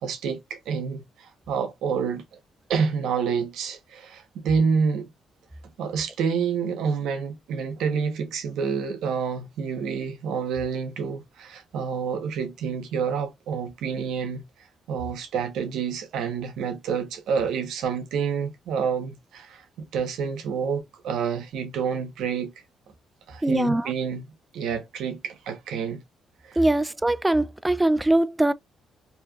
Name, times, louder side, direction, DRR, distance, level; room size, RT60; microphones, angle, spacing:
voice 1, 0.0-2.2 2.7-5.1 5.8-14.4 14.9-22.5 23.3-24.3 24.5-26.0 26.5-26.6, right 6 dB, 85° right, 1.1 m, -28 dB
voice 2, 23.4-23.9 26.6-28.5, right 1 dB, 10° right, 0.4 m, -22 dB
4.3 x 2.9 x 2.4 m
cardioid pair, 90°, 0 cm